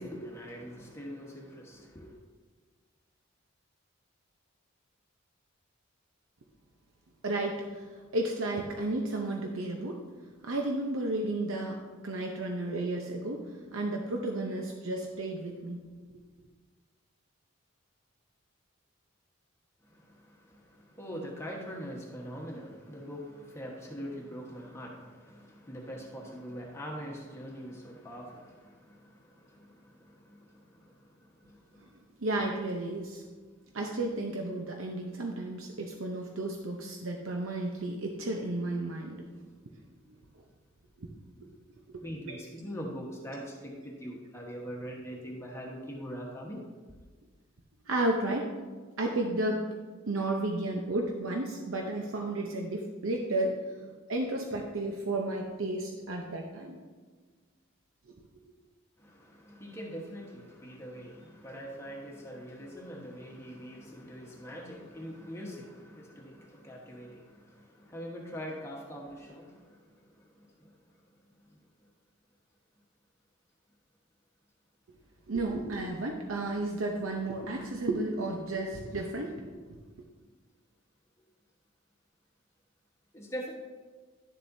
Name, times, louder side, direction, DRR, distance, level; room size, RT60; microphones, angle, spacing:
voice 1, 0.0-2.1 19.8-31.9 42.0-46.6 59.0-70.7 83.1-83.5, equal, 15° left, -2 dB, 1.2 m, -43 dB
voice 2, 7.2-10.0 10.4-15.8 32.2-33.2 33.7-39.2 41.0-41.1 41.4-41.5 41.9-42.4 47.9-48.5 49.0-49.7 50.1-53.6 54.1-56.8 75.3-79.6, right 2 dB, 85° right, 1 dB, 0.8 m, -33 dB
11.0 x 7.5 x 2.7 m, 1.4 s
head